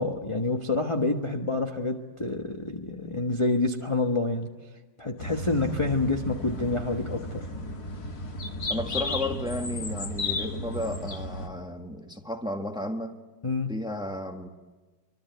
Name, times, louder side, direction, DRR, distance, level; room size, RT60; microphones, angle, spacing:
voice 1, 0.0-4.5 5.0-7.5 13.4-13.7, left 3 dB, 20° left, 1.2 m, -27 dB
sound 1, 5.2-11.5, left 2 dB, 55° left, 2.7 m, -34 dB
voice 2, 8.7-13.1 13.7-14.5, left 1 dB, 5° right, 1.5 m, -33 dB
26.0 x 24.5 x 9.3 m
omnidirectional pair, 2.0 m